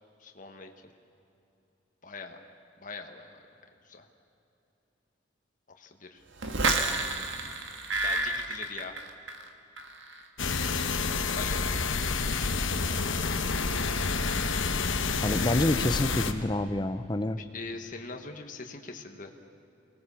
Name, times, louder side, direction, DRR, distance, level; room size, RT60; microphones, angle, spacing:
voice 1, 0.2-0.7 2.0-2.4 2.8-3.4 3.8-4.1 5.8-6.2 6.8-7.0 8.0-9.0 11.4-11.6 17.3-19.4, left 4 dB, 45° left, 4 dB, 1.5 m, -42 dB
sound 1, 6.4-9.5 9.8-10.2, right 3 dB, 80° right, 1.7 m, -30 dB
sound 2, 10.4-16.3, left 4 dB, 90° left, 1.2 m, -29 dB
voice 2, 15.2-17.4, left 1 dB, 20° left, 11 dB, 0.7 m, -27 dB
24.0 x 19.0 x 7.1 m, 2.8 s
head